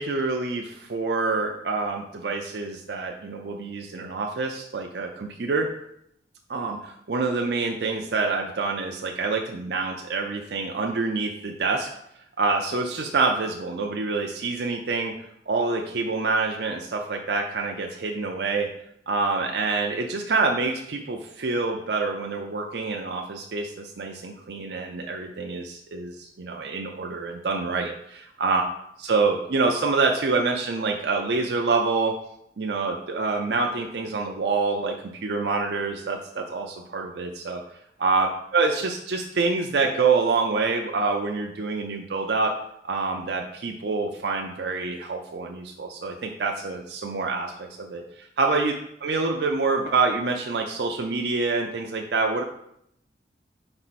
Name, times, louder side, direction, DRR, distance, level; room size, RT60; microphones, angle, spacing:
voice 1, 0.0-5.7 6.5-11.9 12.4-15.1 15.5-18.7 19.1-28.6 29.0-32.1 32.6-34.9 35.2-37.6 38.0-42.5 42.8-48.7 49.0-52.4, right 4 dB, 65° right, 2 dB, 0.5 m, -26 dB
5.4 x 4.4 x 4.1 m, 0.75 s
head